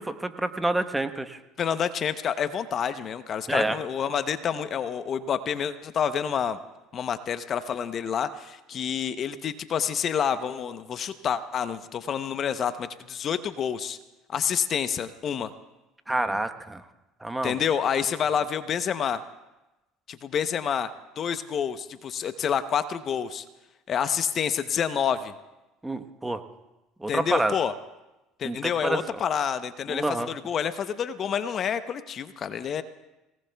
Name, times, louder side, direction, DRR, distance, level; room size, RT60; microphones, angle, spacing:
voice 1, 0.0-1.4 3.5-3.8 16.1-16.8 17.2-17.6 25.8-26.4 27.0-27.5 28.4-29.2 29.9-30.3, right 2 dB, 10° right, 9 dB, 1.1 m, -28 dB
voice 2, 1.6-6.6 6.9-14.0 14.3-15.5 17.4-19.2 20.1-20.9 21.2-23.4 23.9-25.3 27.1-27.7 28.4-32.8, left 8 dB, 45° left, 12 dB, 0.7 m, -28 dB
26.0 x 18.5 x 2.3 m, 1.0 s
hypercardioid pair, 75°, 0 cm